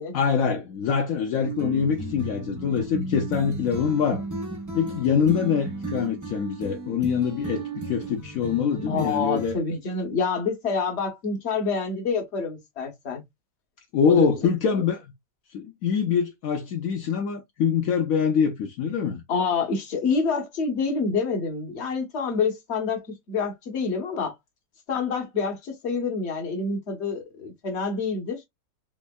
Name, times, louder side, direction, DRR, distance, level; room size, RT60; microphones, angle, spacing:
voice 1, 0.1-4.2 4.7-9.6 13.9-15.1 15.5-19.2, left 7 dB, 70° left, 0.8 m, -24 dB
sound 1, 1.4-9.5, right 2 dB, 20° right, 0.5 m, -34 dB
voice 2, 8.9-13.2 14.0-14.3 19.3-24.3 24.9-28.4, left 4 dB, 45° left, 1.0 m, -27 dB
3.5 x 3.1 x 2.2 m
omnidirectional pair, 1.9 m